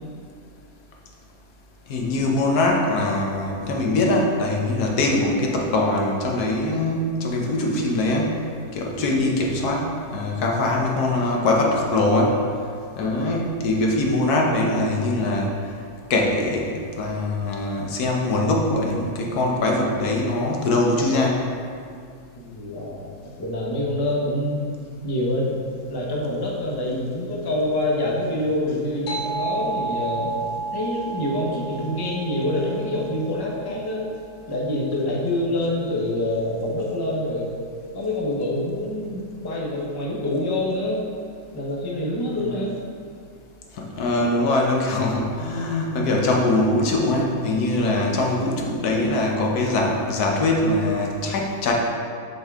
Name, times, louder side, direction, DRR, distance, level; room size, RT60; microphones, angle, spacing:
voice 1, 1.9-8.4 8.7-12.4 13.0-15.5 16.1-21.4 42.4-42.5 43.8-51.7, left 2 dB, 80° left, 0 dB, 1.4 m, -22 dB
voice 2, 12.9-13.3 22.3-24.6 25.0-30.4 30.7-34.1 34.5-37.5 37.9-41.0 41.5-42.7, left 1 dB, 20° left, -3 dB, 0.7 m, -26 dB
sound 1, 29.1-34.0, right 3 dB, 40° left, 1.0 m, -32 dB
8.0 x 4.6 x 3.6 m, 2.2 s
omnidirectional pair, 1.7 m